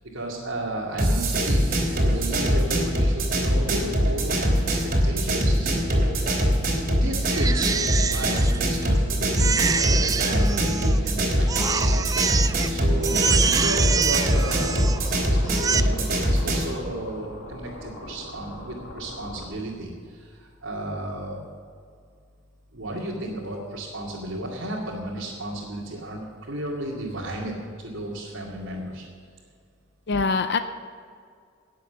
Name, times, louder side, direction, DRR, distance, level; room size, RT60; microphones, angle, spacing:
voice 1, 0.1-4.8 5.0-6.3 6.8-12.0 12.7-14.9 15.6-21.4 22.7-27.5 27.8-29.0, right 1 dB, 80° right, -6 dB, 2.4 m, -33 dB
sound 1, 1.0-16.7, equal, 45° right, 3.1 m, -23 dB
Crying sobbing, 7.3-9.0 9.3-11.1 11.5-12.7 13.0-15.1 15.5-15.8, right 6 dB, 20° right, 0.3 m, -26 dB
sound 2, 14.4-19.5, left 1 dB, 75° left, 2.4 m, -41 dB
voice 2, 30.1-30.6, left 4 dB, 55° left, 9 dB, 0.6 m, -26 dB
18.0 x 7.5 x 6.9 m, 2.1 s
head